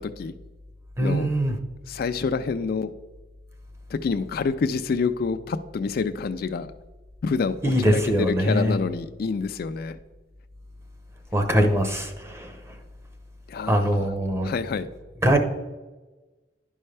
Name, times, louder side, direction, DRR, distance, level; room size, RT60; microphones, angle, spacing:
voice 1, 1.0-1.5 7.6-8.8 11.3-12.6 13.7-14.5 15.2-15.4, equal, 15° right, 4 dB, 0.8 m, -22 dB
voice 2, 1.9-2.9 3.9-6.7 7.2-10.0 13.5-14.1 14.4-14.9, left 5 dB, 55° left, 10 dB, 0.4 m, -27 dB
11.0 x 5.4 x 3.3 m, 1.2 s
head